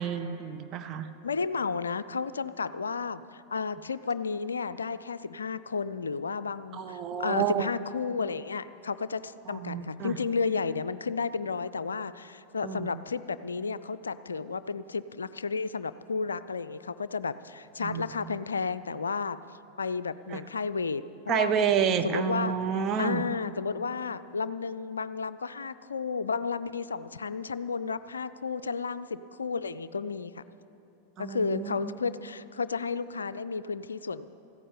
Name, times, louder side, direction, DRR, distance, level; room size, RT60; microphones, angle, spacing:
voice 1, 0.0-1.1 6.7-7.7 9.5-10.2 12.6-12.9 17.8-18.1 20.3-20.4 21.3-23.2 31.2-31.9, right 7 dB, 30° right, 7 dB, 0.9 m, -29 dB
voice 2, 1.2-19.4 19.8-22.5 23.0-30.4 31.2-34.3, left 5 dB, 75° left, 14 dB, 0.4 m, -32 dB
14.5 x 10.0 x 8.5 m, 2.8 s
figure-of-eight pair, 90°, 0 cm